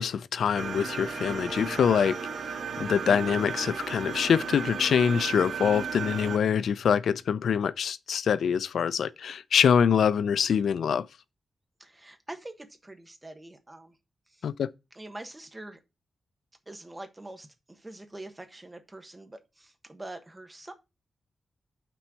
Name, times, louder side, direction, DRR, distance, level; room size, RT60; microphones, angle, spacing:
voice 1, 0.0-2.2 2.8-11.1 14.4-14.7, left 7 dB, 90° left, 0.4 m, -25 dB
sound 1, 0.6-6.4, right 6 dB, 80° right, 1.7 m, -35 dB
voice 2, 11.8-13.9 14.3-14.5 14.9-15.8 16.7-20.7, right 2 dB, 15° right, 1.2 m, -44 dB
6.0 x 4.4 x 6.2 m
wide cardioid pair, 155°, 0 cm